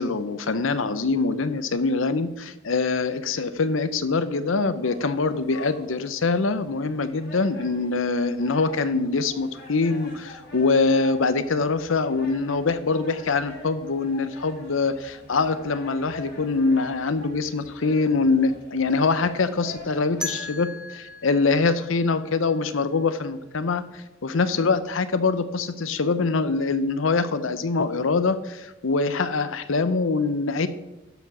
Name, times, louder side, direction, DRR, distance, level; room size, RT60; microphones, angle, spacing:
voice 1, 0.0-30.7, left 4 dB, 75° left, 12 dB, 0.7 m, -24 dB
sound 1, 4.8-20.5, left 1 dB, 55° left, 3.2 m, -45 dB
sound 2, 20.2-23.1, left 2 dB, 5° right, 0.9 m, -38 dB
12.0 x 4.8 x 6.0 m, 0.99 s
head